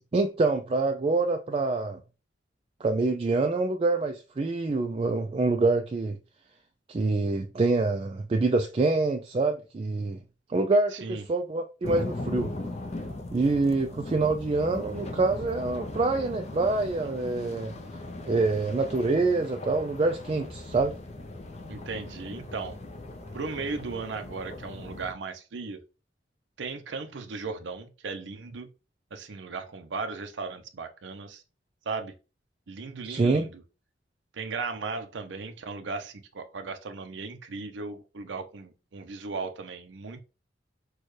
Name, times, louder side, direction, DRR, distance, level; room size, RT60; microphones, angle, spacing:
voice 1, 0.1-2.0 2.8-6.2 6.9-10.2 10.5-12.5 13.3-17.7 18.3-20.9 33.0-33.5, right 3 dB, 30° right, 0.3 m, -26 dB
voice 2, 10.9-11.2 21.7-22.8 23.3-25.8 26.6-28.7 29.1-31.4 31.9-32.1 32.7-33.6 34.3-40.2, right 4 dB, 85° right, 0.6 m, -36 dB
sound 1, 11.8-25.1, left 2 dB, 35° left, 0.6 m, -39 dB
6.3 x 2.3 x 3.2 m
head